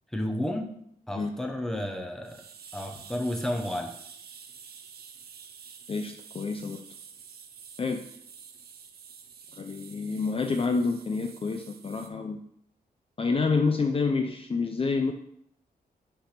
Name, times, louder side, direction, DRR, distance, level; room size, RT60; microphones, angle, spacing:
voice 1, 0.1-0.7 1.1-2.4 2.7-3.9, left 1 dB, 5° left, 4 dB, 0.9 m, -31 dB
sound 1, 2.2-12.1, right 6 dB, 75° right, 0.7 m, -49 dB
voice 2, 5.9-6.8 7.8-8.0 9.5-12.4 13.2-15.1, left 4 dB, 35° left, 5 dB, 0.5 m, -28 dB
8.7 x 3.4 x 5.8 m, 0.70 s
wide cardioid pair, 155°, 16 cm